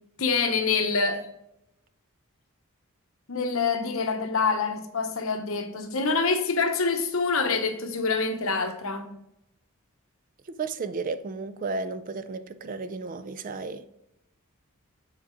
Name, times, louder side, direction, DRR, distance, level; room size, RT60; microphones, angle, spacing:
voice 1, 0.2-1.3 3.3-9.1, left 4 dB, 65° left, 0.9 m, -26 dB
voice 2, 10.5-13.9, right 4 dB, 40° right, 0.4 m, -33 dB
7.8 x 4.0 x 4.9 m
head